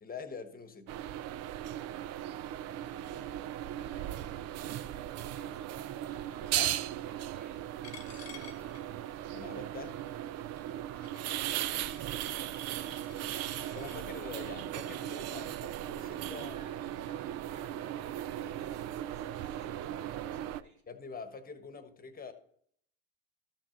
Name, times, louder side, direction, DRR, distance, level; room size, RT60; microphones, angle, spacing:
voice 1, 0.0-0.9 6.6-6.8 9.3-10.0 13.7-16.6 20.9-22.3, left 5 dB, 25° left, 1.2 m, -45 dB
sound 1, 0.9-20.6, right 12 dB, 50° right, 0.5 m, -37 dB
voice 2, 2.9-6.6 7.0-7.6 8.1-9.0 16.2-20.8, right 1 dB, 75° right, 3.5 m, -58 dB
Coin (dropping), 7.8-14.0, left 9 dB, 50° left, 1.0 m, -54 dB
13.0 x 6.2 x 3.9 m
supercardioid pair, 90°, 34 cm